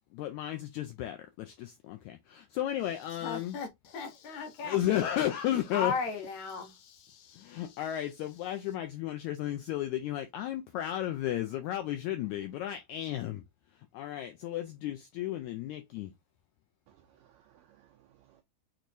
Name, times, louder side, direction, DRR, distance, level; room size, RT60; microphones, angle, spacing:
voice 1, 0.1-3.6 4.6-5.9 7.4-13.4 13.9-16.1, left 12 dB, 90° left, 1.7 m, -33 dB
voice 2, 3.2-4.8 5.7-7.8, left 5 dB, 70° left, 2.0 m, -37 dB
voice 3, 16.9-18.4, right 11 dB, 90° right, 1.6 m, -63 dB
6.5 x 3.0 x 2.6 m
omnidirectional pair, 3.9 m